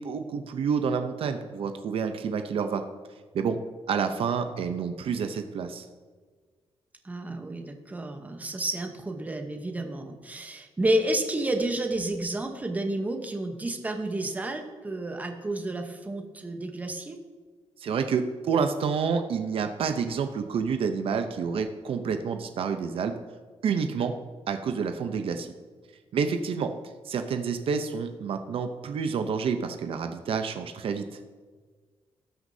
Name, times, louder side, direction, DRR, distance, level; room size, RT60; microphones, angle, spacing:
voice 1, 0.0-2.8 3.3-3.6 3.9-5.9 17.8-23.1 23.6-24.1 24.5-25.5 26.1-26.7 27.0-31.2, right 6 dB, 60° right, 7 dB, 0.7 m, -28 dB
voice 2, 7.0-17.2, right 1 dB, 15° right, 4 dB, 0.9 m, -30 dB
18.5 x 6.2 x 2.7 m, 1.5 s
wide cardioid pair, 170°, 11 cm